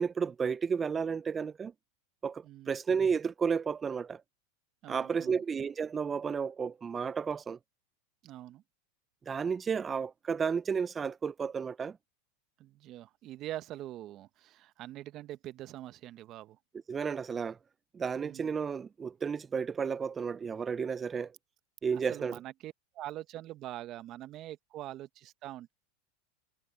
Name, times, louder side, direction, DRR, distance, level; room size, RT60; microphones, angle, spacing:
voice 1, 0.0-1.7 2.2-4.2 4.9-7.6 9.3-12.0 16.9-17.6 17.9-21.3 21.8-22.4, right 6 dB, 20° right, 0.5 m, -32 dB
voice 2, 2.4-2.8 4.8-5.4 8.2-8.6 12.6-16.6 18.2-18.5 21.9-25.7, right 14 dB, 45° right, 1.0 m, -44 dB
supercardioid pair, 115°, 0 cm